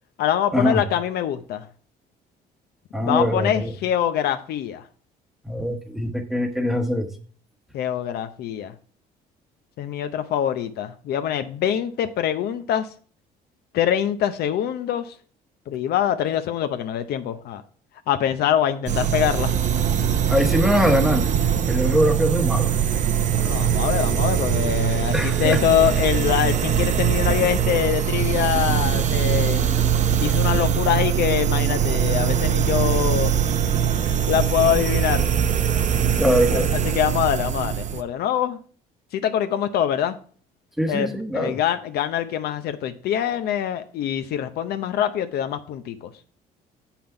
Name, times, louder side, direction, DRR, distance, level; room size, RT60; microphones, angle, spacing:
voice 1, 0.2-1.7 3.0-4.8 7.7-8.7 9.8-12.9 13.7-15.1 15.7-17.6 18.1-19.5 23.4-29.7 30.1-33.6 34.0-35.3 36.5-38.6 39.1-40.2 40.9-46.1, left 10 dB, 70° left, 0.7 m, -24 dB
voice 2, 2.9-3.7 5.4-7.1 20.3-21.3 21.5-22.8 25.1-25.6 36.2-36.7 40.8-41.6, equal, ahead, 1.1 m, -22 dB
sound 1, 18.9-38.0, right 9 dB, 45° right, 0.7 m, -22 dB
7.2 x 5.8 x 4.3 m
cardioid pair, 110°, 17 cm